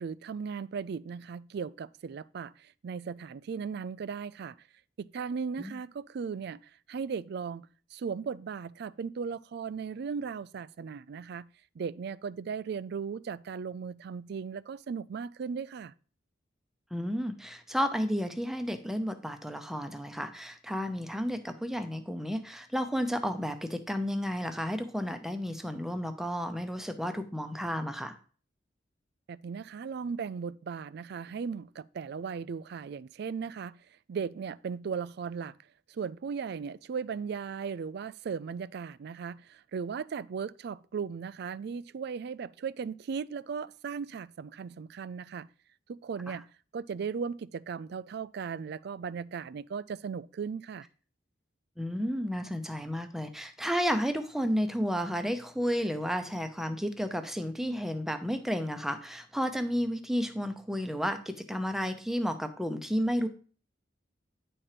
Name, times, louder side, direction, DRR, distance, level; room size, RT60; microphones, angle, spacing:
voice 1, 0.0-4.6 5.0-6.6 6.9-11.5 11.8-15.9 29.3-33.8 34.1-35.6 35.9-45.5 45.9-46.5 46.7-50.9, right 6 dB, 60° right, 0.3 m, -37 dB
voice 2, 16.9-28.2 46.3-46.4 51.8-63.3, equal, ahead, 0.8 m, -32 dB
9.9 x 4.4 x 5.0 m
head